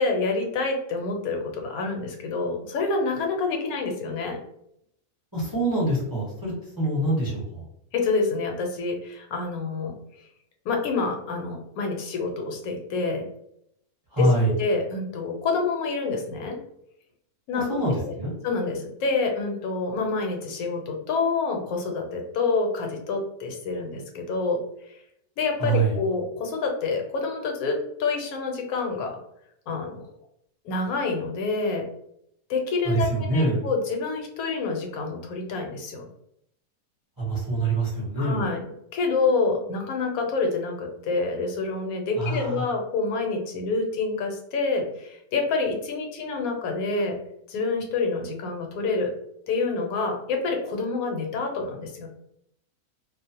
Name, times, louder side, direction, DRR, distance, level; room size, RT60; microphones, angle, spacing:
voice 1, 0.0-4.4 7.9-10.0 10.6-13.3 14.2-14.3 14.6-16.5 17.5-18.1 18.4-24.6 24.9-25.0 25.4-29.2 29.7-30.0 30.6-31.8 32.5-36.1 38.2-38.6 38.9-47.1 47.5-49.1 49.5-52.1, left 4 dB, 75° left, 2 dB, 1.1 m, -27 dB
voice 2, 5.3-7.6 14.1-14.5 17.5-18.3 25.6-26.0 32.8-33.7 37.2-38.4 42.1-42.6, right 2 dB, 20° right, -6 dB, 0.8 m, -25 dB
2.5 x 2.0 x 2.7 m, 0.74 s
omnidirectional pair, 1.6 m